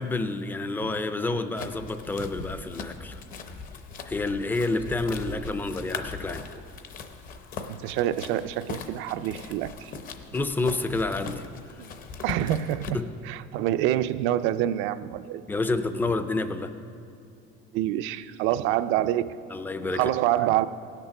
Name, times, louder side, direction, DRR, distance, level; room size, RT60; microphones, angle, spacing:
voice 1, 0.0-3.2 4.1-6.5 10.3-11.4 12.9-13.1 15.5-16.7 19.5-20.1, left 2 dB, 10° left, 0.4 m, -29 dB
sound 1, 1.6-12.9, left 5 dB, 40° left, 0.7 m, -40 dB
voice 2, 7.7-9.9 12.2-13.0 13.2-15.4 17.7-19.4 19.9-20.7, right 13 dB, 70° right, 0.4 m, -26 dB
17.0 x 6.7 x 5.8 m
cardioid pair, 165°, 21 cm